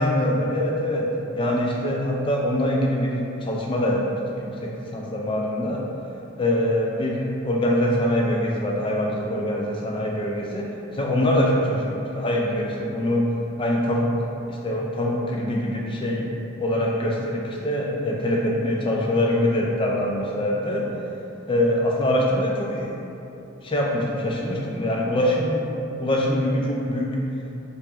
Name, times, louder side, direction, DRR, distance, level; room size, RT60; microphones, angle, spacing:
voice 1, 0.0-5.8 6.4-13.3 13.6-16.3 16.6-20.9 21.5-22.9 23.6-25.7 26.0-27.2, left 1 dB, 25° left, -2 dB, 0.3 m, -24 dB
3.0 x 2.9 x 3.4 m, 2.9 s
head